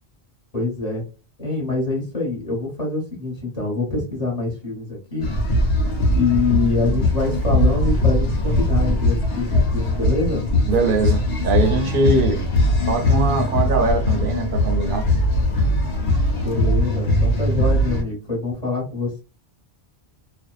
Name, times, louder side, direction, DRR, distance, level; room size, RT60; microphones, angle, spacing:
voice 1, 0.5-1.0 1.4-5.3 6.1-10.4 16.4-19.2, left 3 dB, 35° left, 1.0 m, -25 dB
sound 1, 5.2-18.0, left 1 dB, 70° left, 1.1 m, -20 dB
voice 2, 10.7-12.4 12.9-15.1, right 3 dB, 60° right, 0.6 m, -21 dB
2.6 x 2.2 x 2.3 m
omnidirectional pair, 1.1 m